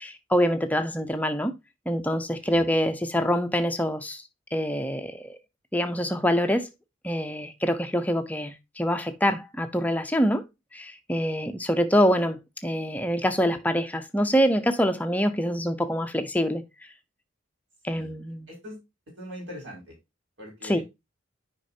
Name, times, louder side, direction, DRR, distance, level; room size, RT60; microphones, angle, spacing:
voice 1, 0.0-1.5 1.9-4.2 4.5-5.4 5.7-6.7 7.0-10.4 10.7-16.6 17.8-18.5 20.6-20.8, equal, 10° left, 0.7 m, -25 dB
voice 2, 18.5-18.8 19.2-20.0 20.4-20.8, left 1 dB, 60° right, 5.5 m, -41 dB
9.7 x 5.2 x 2.7 m
head